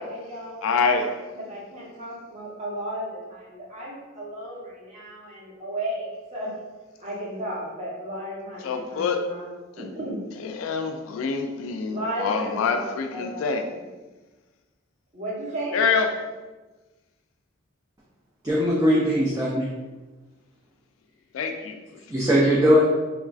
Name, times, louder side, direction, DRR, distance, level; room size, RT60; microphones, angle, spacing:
voice 1, 0.0-6.0 6.3-6.5 7.0-9.5 9.8-10.2 11.9-13.8 15.1-15.8, right 1 dB, 35° right, -6 dB, 0.8 m, -34 dB
voice 2, 0.6-1.1 8.6-9.3 10.4-13.7 15.7-16.1 21.3-21.8, left 5 dB, 75° left, 5 dB, 0.3 m, -25 dB
voice 3, 18.4-19.7 22.1-22.9, equal, 15° right, -6 dB, 0.3 m, -20 dB
3.1 x 2.4 x 2.3 m, 1.2 s
head